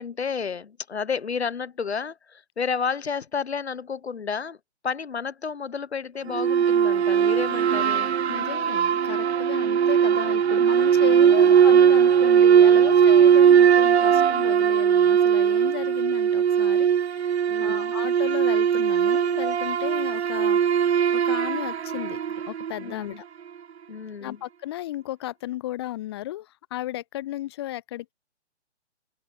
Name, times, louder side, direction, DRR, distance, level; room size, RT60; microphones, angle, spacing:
voice 1, 0.0-4.6 4.8-8.1 11.1-11.7 17.5-17.9 22.8-23.2 23.9-24.4, left 6 dB, 65° left, 1.1 m, -31 dB
sound 1, 6.3-22.9, right 8 dB, 70° right, 0.5 m, -19 dB
voice 2, 8.3-20.8 21.1-22.2 22.5-23.2 24.2-28.1, left 14 dB, 20° left, 0.9 m, -34 dB
open air
figure-of-eight pair, 130°, 34 cm